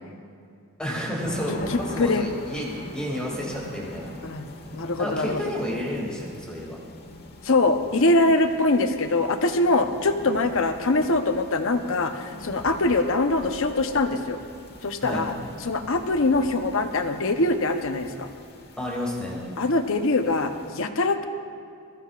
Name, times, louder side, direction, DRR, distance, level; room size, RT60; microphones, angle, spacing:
voice 1, 0.8-4.1 5.0-6.8 15.0-15.2 18.8-19.4, equal, 5° left, -4 dB, 2.4 m, -30 dB
sound 1, 1.2-20.7, left 1 dB, 45° left, 1.2 m, -43 dB
voice 2, 1.5-2.3 4.2-4.4 4.7-5.4 7.4-14.4 14.8-15.3 15.6-18.3 19.6-21.2, left 2 dB, 60° left, 6 dB, 0.9 m, -23 dB
22.5 x 14.5 x 2.5 m, 2.4 s
head